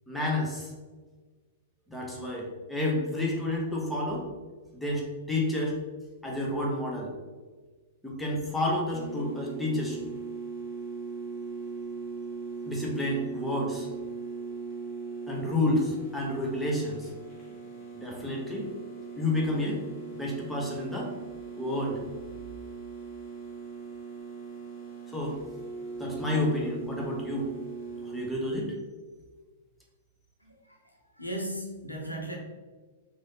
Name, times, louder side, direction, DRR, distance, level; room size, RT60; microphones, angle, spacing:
voice 1, 0.1-0.7 1.9-4.3 4.7-5.8 6.2-7.1 8.0-10.0 12.6-13.9 15.3-17.1 17.9-18.7 19.2-19.8 20.1-21.1 21.6-22.0 25.1-25.4 26.0-27.5 28.0-28.7, left 1 dB, 5° left, -3 dB, 0.8 m, -30 dB
sound 1, 8.9-28.3, right 5 dB, 20° left, 1.3 m, -40 dB
voice 2, 30.4-32.4, right 1 dB, 90° left, 0 dB, 0.7 m, -37 dB
3.8 x 2.6 x 3.4 m, 1.3 s
figure-of-eight pair, 100°, 0 cm